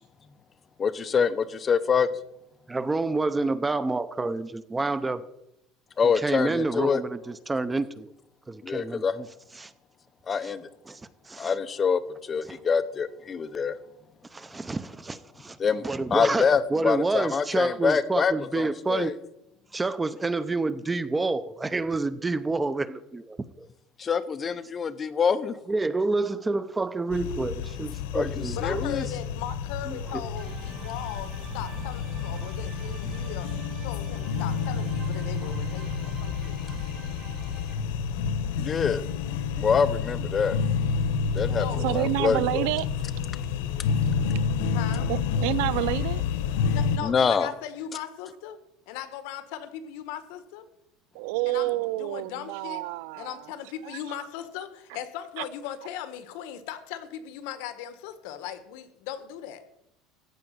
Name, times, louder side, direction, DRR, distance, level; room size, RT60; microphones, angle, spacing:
voice 1, 0.8-2.1 6.0-7.0 8.6-9.1 10.3-10.7 11.4-13.8 15.6-15.8 16.1-19.1 24.0-25.5 28.1-29.1 38.6-39.0 39.6-40.6 41.3-42.7 47.0-47.5, left 6 dB, 20° left, 12 dB, 0.8 m, -25 dB
voice 2, 2.7-5.2 6.2-8.1 8.5-9.3 9.6-9.7 10.4-10.5 10.9-11.0 11.3-11.5 12.5-12.6 14.3-15.6 15.8-19.1 19.7-23.7 25.7-28.8 29.9-30.3, right 3 dB, 10° right, 14 dB, 0.6 m, -28 dB
sound 1, 27.1-47.0, left 6 dB, 90° left, 1.1 m, -29 dB
voice 3, 28.6-33.5 33.8-36.6 41.5-41.9 42.2-42.3 44.7-45.1 46.7-48.6 48.9-50.6 51.5-51.7 52.0-52.8 53.2-59.6, left 10 dB, 70° left, 11 dB, 1.4 m, -38 dB
sound 2, 30.4-37.7, right 4 dB, 30° right, 1.7 m, -44 dB
voice 4, 41.8-42.9 45.1-46.2 51.1-54.3 54.9-55.0 55.4-55.5, right 19 dB, 75° right, 20 dB, 0.4 m, -29 dB
15.0 x 5.0 x 9.4 m, 0.83 s
cardioid pair, 160°, 0 cm